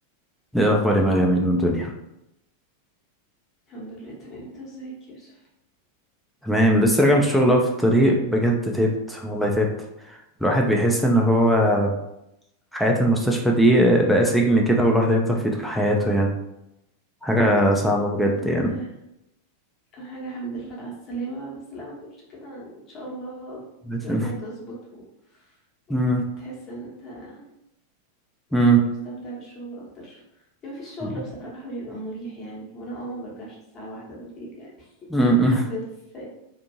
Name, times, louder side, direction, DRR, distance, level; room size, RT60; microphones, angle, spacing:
voice 1, 0.5-1.9 6.4-9.7 10.1-12.0 12.7-16.3 17.2-18.7 23.9-24.3 25.9-26.3 28.5-28.9 35.1-35.6, right 1 dB, ahead, -1 dB, 0.4 m, -20 dB
voice 2, 3.7-5.5 18.3-18.9 19.9-23.6 24.0-25.6 26.4-27.5 28.5-34.9 35.2-35.4 35.6-35.8 36.1-36.3, right 2 dB, 30° left, -4 dB, 1.0 m, -37 dB
2.6 x 2.4 x 2.7 m, 0.85 s
figure-of-eight pair, 90°, 0 cm